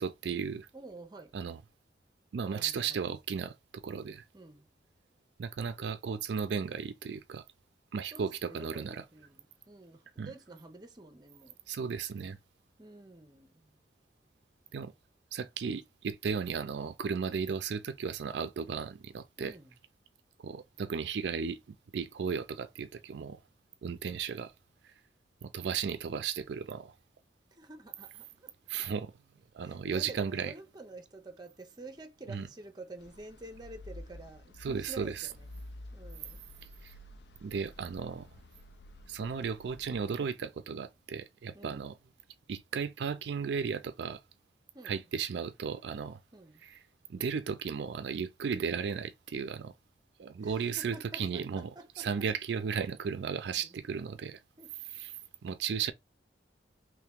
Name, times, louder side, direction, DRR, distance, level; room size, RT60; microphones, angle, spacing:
voice 1, 0.0-0.7 1.3-1.6 2.3-4.2 5.4-7.4 7.9-9.0 10.2-10.3 11.7-12.4 14.7-14.9 15.3-19.5 20.4-23.4 23.8-24.5 24.8-24.9 25.4-26.9 28.7-29.1 29.5-30.5 32.3-32.5 34.6-35.3 36.6-36.9 37.4-38.3 39.1-41.9 42.5-44.2 44.8-46.2 46.6-46.7 47.1-49.7 50.2-51.7 52.0-54.4 54.9-55.1 55.4-55.9, right 6 dB, 75° right, 0.4 m, -35 dB
voice 2, 0.7-1.4 2.4-3.1 4.3-4.7 8.1-11.6 12.8-13.8 19.4-19.8 27.5-28.5 29.6-35.6 35.9-36.4 41.5-41.9 44.7-45.0 46.3-46.6 50.4-52.1 53.6-53.8 54.6-54.7, right 2 dB, 25° right, 0.7 m, -49 dB
sound 1, 33.0-40.0, left 1 dB, 70° left, 0.5 m, -50 dB
3.1 x 2.9 x 3.5 m
head